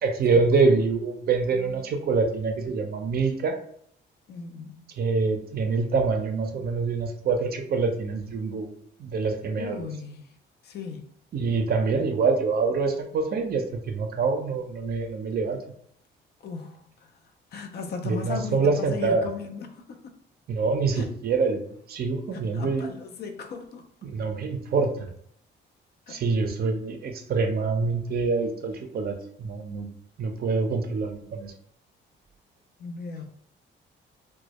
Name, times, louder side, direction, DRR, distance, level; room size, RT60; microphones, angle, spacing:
voice 1, 0.0-3.6 5.0-8.7 9.0-9.8 11.3-15.6 18.0-19.2 20.5-22.9 24.0-25.1 26.1-29.9 30.2-31.5, right 4 dB, 50° right, 4 dB, 0.5 m, -25 dB
voice 2, 4.3-4.9 9.5-10.4 10.6-11.1 16.4-16.8 17.5-20.0 20.9-21.2 22.3-23.9 26.1-26.2 32.8-33.3, left 5 dB, 55° left, 6 dB, 0.4 m, -36 dB
2.1 x 2.0 x 2.8 m, 0.66 s
cardioid pair, 90°, 20 cm